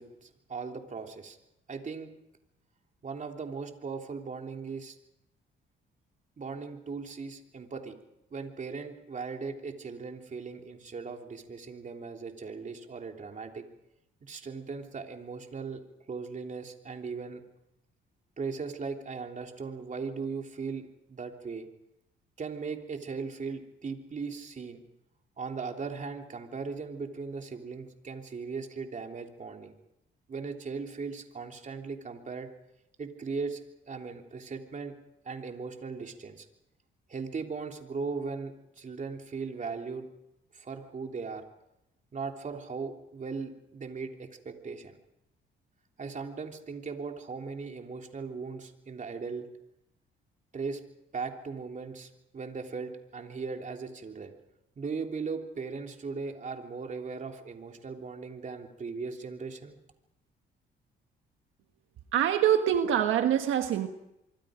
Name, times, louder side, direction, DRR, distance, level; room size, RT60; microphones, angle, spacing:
voice 1, 0.0-1.4 1.7-2.1 3.0-5.0 6.4-7.9 8.3-13.6 14.2-15.8 16.1-17.4 18.4-21.7 22.4-24.8 25.4-29.7 30.3-32.5 33.0-33.6 33.9-34.9 35.2-36.5 37.1-40.1 40.5-41.4 42.1-45.0 46.0-49.5 50.5-50.8 51.1-54.3 54.8-59.7, right 4 dB, 40° right, 3 dB, 3.3 m, -38 dB
voice 2, 62.1-63.9, right 10 dB, 85° right, 6 dB, 1.5 m, -25 dB
25.0 x 24.5 x 5.1 m, 0.86 s
cardioid pair, 90°, 20 cm